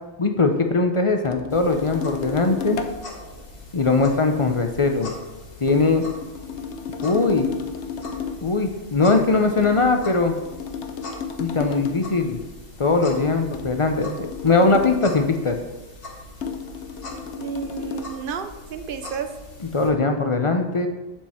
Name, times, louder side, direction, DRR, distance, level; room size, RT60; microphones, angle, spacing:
voice 1, 0.2-2.8 3.7-5.1 5.6-6.0 7.0-7.5 8.4-10.4 11.4-12.4 12.8-15.6 19.7-20.9, left 3 dB, 35° left, 5 dB, 0.5 m, -20 dB
sound 1, 1.2-3.1 5.7-8.5 9.6-12.1 13.5-15.1 16.4-18.2, left 6 dB, 75° left, 1.0 m, -33 dB
sound 2, 1.5-19.9, left 1 dB, 55° left, 1.6 m, -42 dB
voice 2, 17.4-19.4, right 7 dB, 55° right, 9 dB, 0.8 m, -31 dB
7.4 x 7.4 x 4.3 m, 1.1 s
omnidirectional pair, 1.2 m